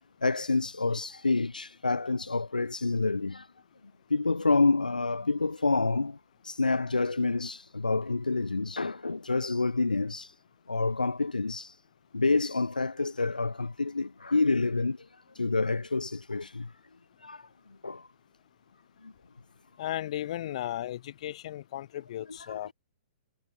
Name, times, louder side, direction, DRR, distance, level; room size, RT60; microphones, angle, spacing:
voice 1, 0.2-3.5 4.1-6.2 6.4-10.3 10.7-11.7 12.1-15.0 15.3-16.7 17.2-17.4 17.8-18.1 22.5-22.6, left 3 dB, 80° left, 3.0 m, -28 dB
voice 2, 19.8-22.7, left 13 dB, 50° left, 4.3 m, -35 dB
figure-of-eight pair, 115°, 4 cm